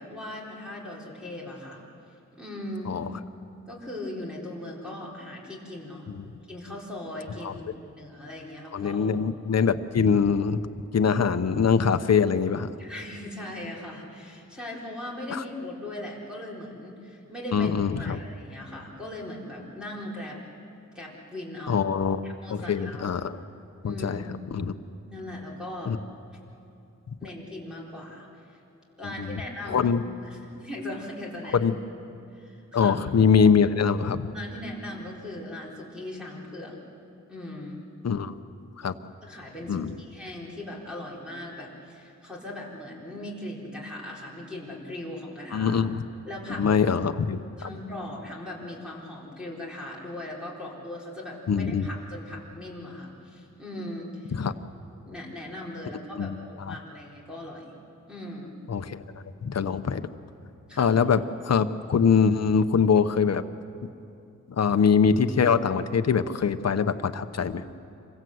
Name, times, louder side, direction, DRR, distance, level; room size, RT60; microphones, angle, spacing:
voice 1, 0.0-1.8 2.3-3.0 3.7-6.1 6.5-9.1 12.8-20.4 20.9-21.9 22.2-23.1 23.8-24.4 25.1-25.9 27.2-28.6 29.0-29.9 30.2-31.7 32.3-33.0 34.3-36.8 37.3-37.8 39.2-45.7 46.2-46.8 47.6-54.4 55.0-57.6 58.1-58.6 60.7-61.0, left 1 dB, 5° right, -4 dB, 4.4 m, -39 dB
voice 2, 8.7-10.6 10.9-12.7 15.3-15.4 17.5-18.2 21.7-22.2 22.5-23.4 23.8-24.2 24.5-24.7 25.9-26.0 29.0-29.4 29.7-30.0 31.5-31.7 32.7-34.3 38.0-38.3 38.8-38.9 39.7-39.9 45.5-46.0 46.6-47.7 51.5-51.9 54.3-54.5 56.1-56.8 58.7-59.0 59.4-60.0 60.8-63.4 64.5-67.6, left 6 dB, 55° left, 10 dB, 0.9 m, -23 dB
27.0 x 24.0 x 7.9 m, 2.7 s
wide cardioid pair, 170°, 30 cm